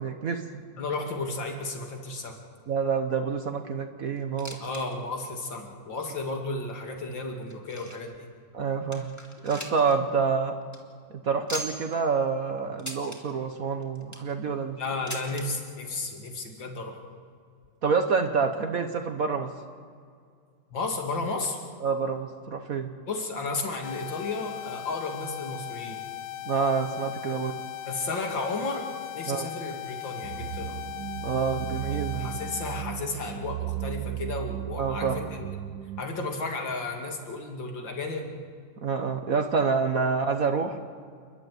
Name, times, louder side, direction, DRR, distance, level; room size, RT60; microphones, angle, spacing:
voice 1, 0.0-0.6 2.7-4.6 8.5-10.5 11.1-14.8 17.8-19.5 21.8-22.9 26.5-27.5 29.3-29.5 31.2-32.4 34.8-35.2 38.8-40.8, right 5 dB, 55° right, 6 dB, 1.4 m, -27 dB
voice 2, 0.8-2.4 4.6-8.3 14.8-17.0 20.7-21.6 23.1-26.0 27.9-28.9 29.1-30.8 32.2-35.5 36.0-38.3, left 3 dB, 85° left, 2 dB, 3.2 m, -33 dB
sound 1, 4.2-4.8 5.1-5.2 5.9-6.0 6.7-8.2 8.6-8.7 8.9-9.9 10.2-10.3 10.6-10.8 11.5-12.0 12.8-13.2 13.8-14.3 15.1-15.5 16.4-16.5 16.7-16.8 17.6-17.7, equal, 10° left, 2.4 m, -39 dB
sound 2, 23.8-32.8, left 14 dB, 65° left, 0.7 m, -38 dB
sound 3, 30.2-36.0, right 13 dB, 70° right, 1.2 m, -35 dB
29.5 x 12.0 x 9.5 m, 2.2 s
omnidirectional pair, 2.0 m